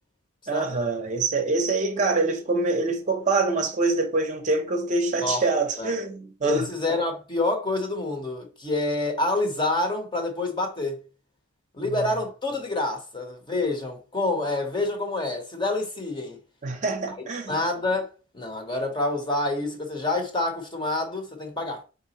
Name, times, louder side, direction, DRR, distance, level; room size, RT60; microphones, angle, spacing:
voice 1, 0.5-6.6 11.8-12.0 16.6-17.6, right 3 dB, 35° right, 0.7 m, -25 dB
voice 2, 6.4-11.0 11.7-16.4 17.5-18.1 18.3-21.8, left 2 dB, 20° left, 0.8 m, -27 dB
3.9 x 3.5 x 2.8 m
head